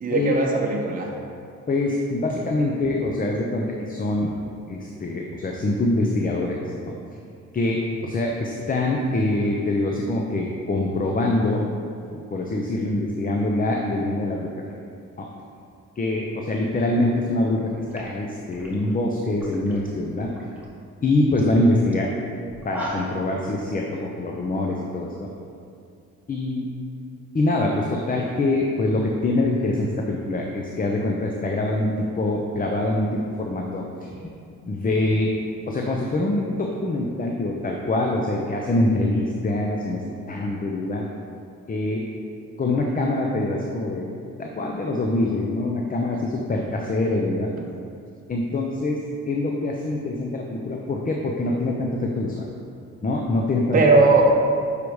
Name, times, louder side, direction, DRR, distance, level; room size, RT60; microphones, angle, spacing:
voice 1, 0.0-1.1 53.7-54.4, right 3 dB, 30° right, -1 dB, 0.9 m, -18 dB
voice 2, 1.7-4.4 4.7-6.6 7.5-11.6 12.1-14.6 15.2-15.3 16.0-20.3 21.0-22.1 22.6-25.3 26.3-26.7 27.3-33.9 34.7-35.3 35.7-40.0 40.3-41.1 41.7-42.1 42.6-44.1 44.4-47.5 48.3-52.4 53.0-53.8, left 2 dB, 30° left, 0 dB, 0.7 m, -24 dB
sound 1, 17.6-17.7 17.9-19.9 20.2-20.7 21.0-21.1 21.3-21.5 21.9-22.0 22.5-23.3, equal, 5° right, 1.4 m, -37 dB
6.7 x 5.0 x 4.7 m, 2.5 s
cardioid pair, 90°, 30 cm